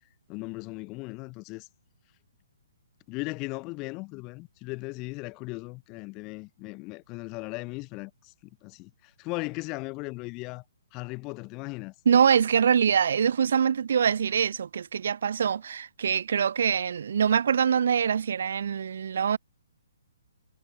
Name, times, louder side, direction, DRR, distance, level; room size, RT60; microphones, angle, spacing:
voice 1, 0.3-1.7 3.1-8.3 8.6-10.6 10.9-11.9, left 25 dB, 25° left, 6.5 m, -37 dB
voice 2, 12.0-19.4, right 7 dB, 55° right, 1.7 m, -24 dB
figure-of-eight pair, 125°, 0 cm